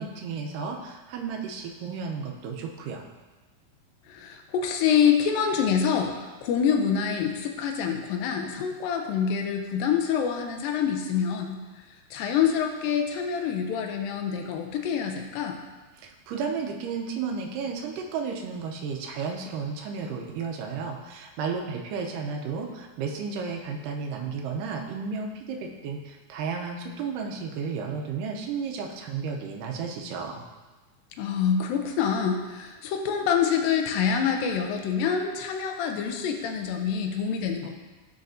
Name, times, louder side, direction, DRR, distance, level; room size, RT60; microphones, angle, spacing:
voice 1, 0.0-3.1 16.0-30.4, right 5 dB, 80° right, 1 dB, 2.0 m, -33 dB
voice 2, 4.1-11.6 12.1-15.6 31.2-37.7, left 7 dB, 80° left, 4 dB, 2.2 m, -26 dB
12.0 x 4.1 x 2.6 m, 1.2 s
omnidirectional pair, 4.3 m